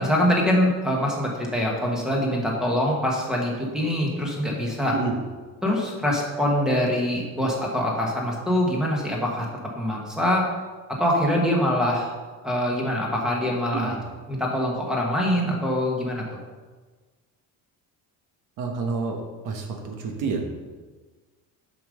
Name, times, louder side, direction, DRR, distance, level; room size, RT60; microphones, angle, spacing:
voice 1, 0.0-4.9 5.6-9.4 9.7-10.5 11.0-12.1 12.4-13.9 14.3-16.4, left 1 dB, ahead, -2 dB, 1.2 m, -24 dB
voice 2, 4.9-5.2 13.7-14.0 18.6-20.4, right 4 dB, 55° right, 3 dB, 1.1 m, -29 dB
7.1 x 5.4 x 6.3 m, 1.4 s
cardioid pair, 180°, 39 cm